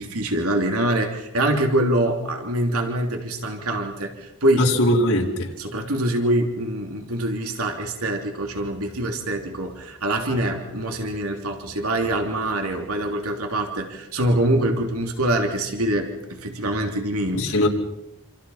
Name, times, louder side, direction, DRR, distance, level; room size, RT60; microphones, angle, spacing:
voice 1, 0.0-4.7 5.6-17.5, right 1 dB, 85° right, 3 dB, 3.1 m, -24 dB
voice 2, 4.6-5.5 17.3-17.7, left 1 dB, 80° left, 0 dB, 4.6 m, -20 dB
28.0 x 27.0 x 5.7 m, 0.85 s
head